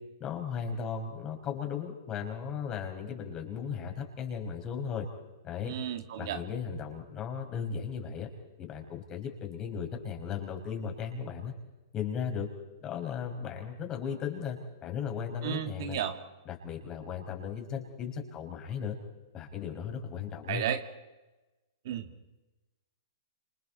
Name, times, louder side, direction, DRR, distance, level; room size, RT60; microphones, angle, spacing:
voice 1, 0.2-5.1 5.4-5.7 6.2-8.3 8.6-11.5 11.9-12.5 12.8-16.0 16.5-19.0 19.3-20.6, left 7 dB, 25° left, 3 dB, 5.3 m, -36 dB
voice 2, 5.7-6.4 15.4-16.1 20.5-20.8 21.8-22.1, right 10 dB, 60° right, 6 dB, 2.3 m, -33 dB
30.0 x 28.0 x 4.4 m, 1.1 s
hypercardioid pair, 120°, 2 cm